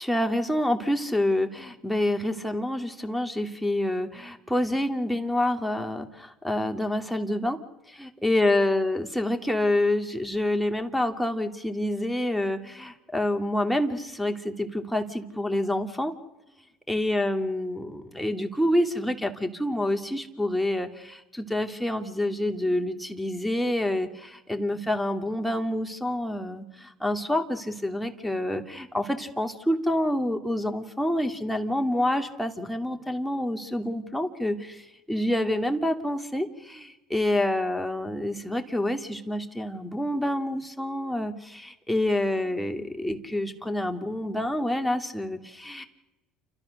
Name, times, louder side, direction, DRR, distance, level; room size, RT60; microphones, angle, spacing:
voice 1, 0.0-7.6 7.9-16.1 16.9-45.8, left 1 dB, 5° left, 4 dB, 2.5 m, -27 dB
30.0 x 13.5 x 6.6 m, 1.0 s
supercardioid pair, 95°, 0 cm